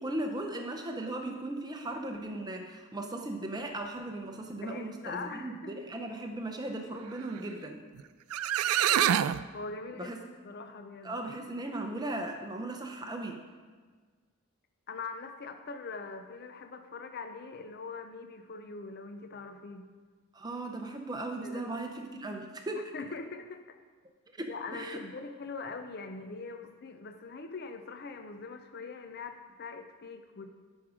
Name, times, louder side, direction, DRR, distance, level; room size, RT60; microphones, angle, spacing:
voice 1, 0.0-7.8 10.0-10.2 11.0-13.4 20.3-22.9 24.4-25.0, right 2 dB, 20° right, 4 dB, 0.6 m, -37 dB
voice 2, 4.6-5.8 9.5-10.1 10.4-11.2 14.9-19.9 21.4-21.6 22.7-23.8 24.5-30.5, left 4 dB, 45° left, 7 dB, 0.5 m, -42 dB
sound 1, 8.0-8.1 8.3-9.4, right 10 dB, 85° right, 0.3 m, -25 dB
12.0 x 6.2 x 4.9 m, 1.5 s
head